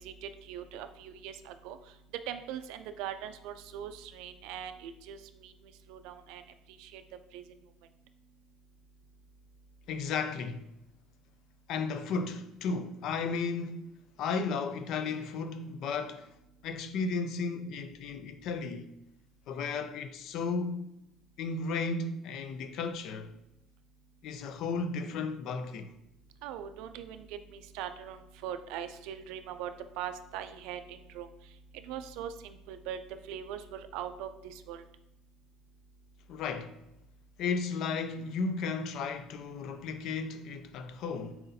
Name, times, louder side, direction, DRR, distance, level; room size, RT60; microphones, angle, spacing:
voice 1, 0.0-1.8 2.3-5.5 5.9-6.4 6.8-7.0 7.3-7.4 26.4-31.3 31.8-33.0 33.3-34.8, right 9 dB, 75° right, 0.3 m, -41 dB
voice 2, 9.9-10.7 11.7-13.9 14.2-16.3 16.6-18.9 19.5-20.9 21.4-23.3 24.2-25.9 36.3-36.8 37.4-41.4, left 4 dB, 55° left, 0.3 m, -34 dB
4.2 x 3.9 x 2.7 m
cardioid pair, 155°, 0 cm